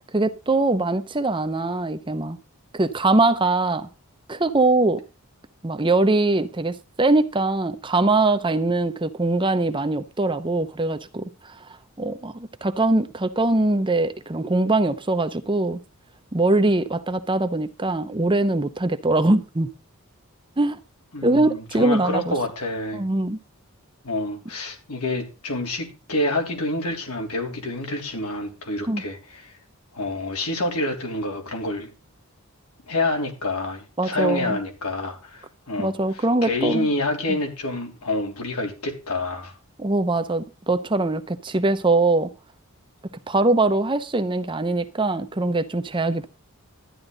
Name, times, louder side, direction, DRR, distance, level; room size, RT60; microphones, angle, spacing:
voice 1, 0.1-2.4 2.7-3.9 4.3-5.0 5.6-11.3 12.0-15.8 16.3-19.7 20.6-20.8 21.2-22.3 22.9-23.4 28.9-29.0 34.0-34.6 35.8-36.9 37.3-37.4 39.8-42.3 43.3-46.3, right 2 dB, 20° right, 0.7 m, -22 dB
voice 2, 21.1-23.0 24.0-29.5 29.9-31.9 32.9-35.9 36.4-39.5, left 2 dB, 80° left, 3.3 m, -27 dB
13.0 x 10.0 x 3.9 m
head